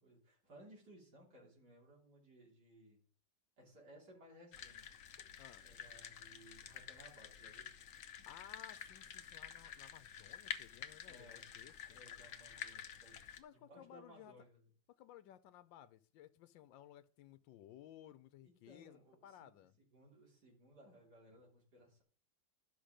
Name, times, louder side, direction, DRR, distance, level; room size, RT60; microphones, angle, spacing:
voice 1, 0.0-3.0 3.6-4.9 5.6-7.7 11.0-11.5 11.9-13.2 13.5-14.6 18.4-19.6 19.9-22.0, equal, 60° right, 3.8 m, -61 dB
sound 1, 4.5-13.4, left 8 dB, 55° left, 1.0 m, -50 dB
voice 2, 8.3-12.0 13.4-14.3 15.0-19.8, left 12 dB, 85° left, 1.4 m, -58 dB
12.0 x 5.9 x 5.0 m
omnidirectional pair, 2.0 m